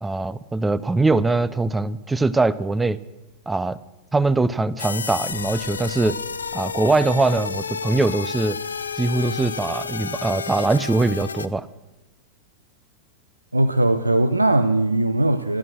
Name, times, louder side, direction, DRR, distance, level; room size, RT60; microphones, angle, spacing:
voice 1, 0.0-3.0 3.5-3.8 4.1-6.2 6.5-8.6 9.0-11.7, right 3 dB, 10° right, 16 dB, 0.4 m, -22 dB
sound 1, 4.8-11.5, left 5 dB, 75° left, 0.5 m, -31 dB
voice 2, 13.5-15.6, right 1 dB, 85° right, 9 dB, 0.5 m, -19 dB
14.0 x 12.0 x 6.0 m, 1.1 s
figure-of-eight pair, 90°, 0 cm